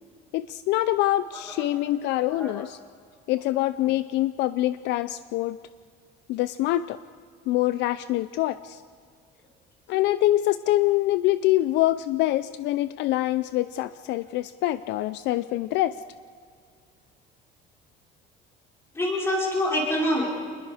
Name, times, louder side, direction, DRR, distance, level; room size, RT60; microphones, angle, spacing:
voice 1, 0.3-2.8 3.3-5.6 6.3-7.0 7.5-8.8 9.9-15.9, left 15 dB, 65° left, 14 dB, 0.5 m, -25 dB
voice 2, 18.9-20.3, left 1 dB, 15° left, -3 dB, 4.5 m, -26 dB
27.0 x 20.5 x 5.0 m, 2.1 s
cardioid pair, 170°, 19 cm